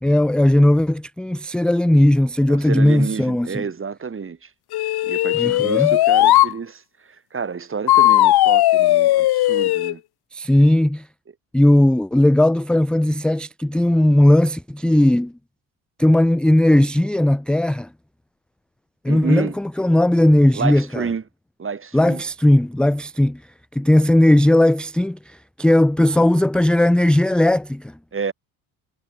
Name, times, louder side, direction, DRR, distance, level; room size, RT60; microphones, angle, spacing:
voice 1, 0.0-3.6 5.3-6.0 10.3-11.1 11.5-15.3 16.0-17.9 19.0-21.1 21.9-23.4 23.7-27.9, left 1 dB, ahead, 0.6 m, -17 dB
voice 2, 2.5-4.5 5.0-10.0 19.1-19.6 20.5-21.2 21.6-22.2 28.1-28.3, right 5 dB, 25° right, 2.1 m, -29 dB
sound 1, 4.7-6.5 7.9-9.9, left 15 dB, 50° left, 1.1 m, -16 dB
hypercardioid pair, 65°, 49 cm